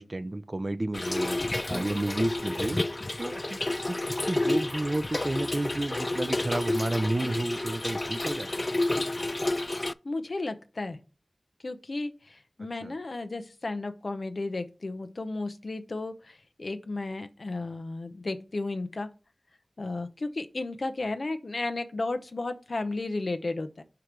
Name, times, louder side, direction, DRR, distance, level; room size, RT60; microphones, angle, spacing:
voice 1, 0.0-1.4 1.7-3.6 3.9-8.7 12.8-12.9, right 2 dB, 45° right, 0.6 m, -31 dB
Trickle dribble / Fill (with liquid), 0.9-9.9, left 2 dB, 40° left, 0.3 m, -30 dB
voice 2, 10.0-11.0 11.6-19.1 19.8-23.8, left 2 dB, 75° left, 0.7 m, -33 dB
5.1 x 4.8 x 5.9 m
wide cardioid pair, 45°, 0 cm